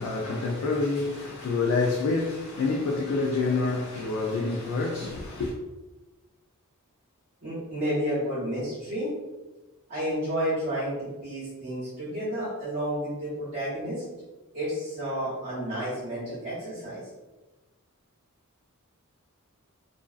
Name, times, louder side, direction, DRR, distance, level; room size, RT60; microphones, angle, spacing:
voice 1, 0.0-5.5, left 3 dB, 75° left, 0.3 m, -27 dB
voice 2, 7.4-9.1 9.9-14.0 14.5-17.0, equal, 55° right, 0.9 m, -31 dB
2.5 x 2.2 x 2.3 m
head